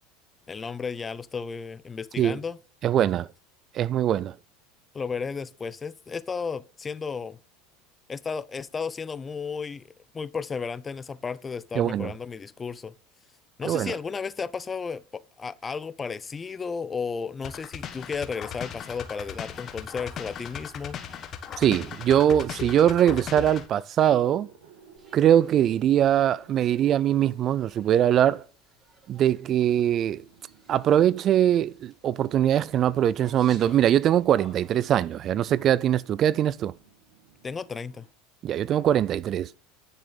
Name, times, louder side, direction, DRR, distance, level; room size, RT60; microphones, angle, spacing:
voice 1, 0.5-2.6 4.9-7.4 8.1-9.8 10.1-12.9 13.6-21.0 37.4-38.1, left 5 dB, 25° left, 0.5 m, -33 dB
voice 2, 2.8-3.3 3.7-4.3 11.8-12.1 13.6-13.9 21.6-24.5 25.1-28.4 29.1-30.2 30.7-36.7 38.4-39.5, right 10 dB, 45° right, 0.3 m, -22 dB
sound 1, 17.4-23.7, left 8 dB, 45° left, 1.3 m, -37 dB
sound 2, 24.1-27.7 28.6-28.7 29.7-33.7 34.7-34.8 35.4-38.1 38.5-38.6, right 6 dB, 80° right, 1.9 m, -54 dB
sound 3, 25.0-35.0, right 3 dB, 30° right, 4.8 m, -55 dB
10.0 x 6.6 x 4.0 m
hypercardioid pair, 90°, 0 cm